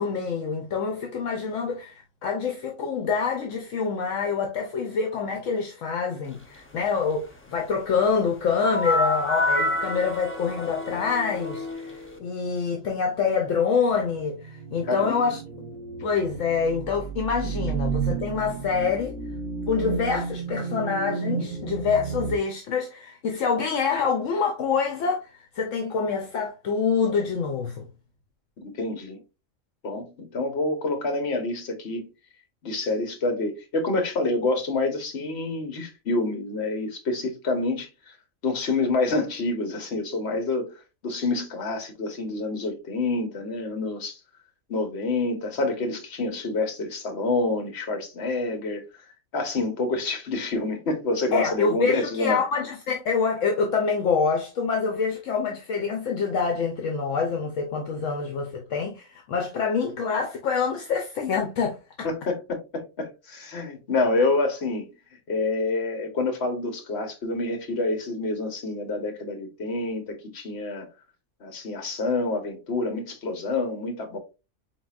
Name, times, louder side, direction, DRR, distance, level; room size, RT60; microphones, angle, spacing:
voice 1, 0.0-15.4 16.0-19.2 19.7-27.8 51.3-62.1, left 5 dB, 70° left, 1.0 m, -26 dB
sound 1, 8.6-12.2, left 1 dB, 15° left, 0.5 m, -27 dB
sound 2, 13.9-22.4, right 5 dB, 70° right, 1.4 m, -32 dB
voice 2, 14.9-15.2 28.6-29.2 29.8-32.1 32.6-38.1 38.4-40.7 41.0-44.2 44.7-52.4 62.0-64.9 65.3-70.9 71.4-74.2, left 2 dB, 55° left, 1.3 m, -27 dB
4.6 x 3.9 x 2.4 m
omnidirectional pair, 1.4 m